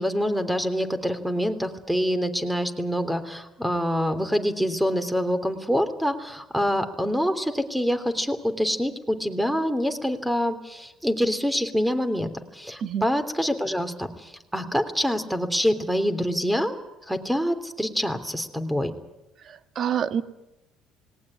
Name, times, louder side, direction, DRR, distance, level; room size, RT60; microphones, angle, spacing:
voice 1, 0.0-16.7 17.1-18.9, equal, 5° right, 9 dB, 3.2 m, -26 dB
voice 2, 19.5-20.2, right 8 dB, 55° right, 11 dB, 1.5 m, -27 dB
19.5 x 18.5 x 9.8 m, 0.93 s
supercardioid pair, 70°, 0 cm